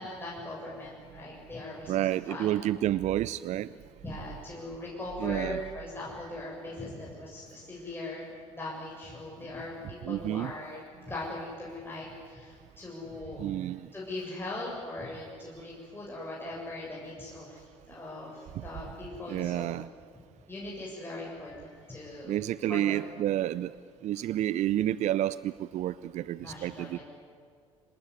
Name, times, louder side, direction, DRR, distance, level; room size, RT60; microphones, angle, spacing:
voice 1, 0.0-2.5 4.0-13.4 13.9-19.7 20.5-22.3 22.7-23.0 26.4-27.0, left 2 dB, 15° left, -5 dB, 7.2 m, -40 dB
voice 2, 1.9-3.7 5.2-5.6 10.0-10.5 13.4-13.9 18.6-18.7 19.3-19.9 22.3-23.7 24.0-27.0, right 13 dB, 50° right, 18 dB, 0.6 m, -30 dB
26.0 x 19.5 x 9.8 m, 2.1 s
hypercardioid pair, 55°, 15 cm